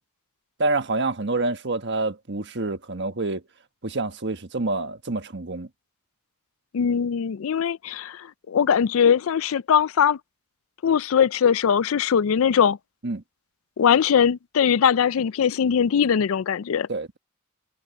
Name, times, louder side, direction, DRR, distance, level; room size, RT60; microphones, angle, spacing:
voice 1, 0.6-3.4 3.8-5.7 13.0-13.2 16.9-17.2, right 2 dB, 55° right, 1.4 m, -27 dB
voice 2, 6.7-10.2 10.8-12.8 13.8-16.9, left 7 dB, 70° left, 0.4 m, -21 dB
head